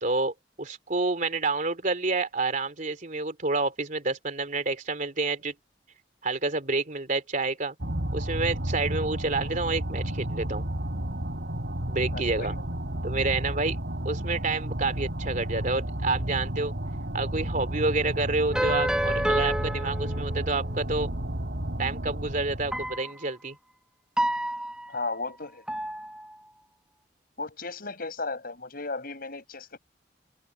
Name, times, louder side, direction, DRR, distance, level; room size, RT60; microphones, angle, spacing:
voice 1, 0.0-5.5 6.2-7.7 8.1-10.7 11.9-12.6 13.0-13.8 14.0-16.7 17.1-21.1 21.8-23.6, right 3 dB, 50° right, 3.1 m, -29 dB
sound 1, 7.8-23.0, right 1 dB, 75° right, 3.0 m, -32 dB
voice 2, 12.1-12.6 24.9-25.7 27.4-29.8, left 3 dB, 55° left, 7.6 m, -35 dB
sound 2, 18.5-20.7 22.7-23.2 24.2-25.1 25.7-26.5, right 1 dB, 5° right, 1.0 m, -29 dB
head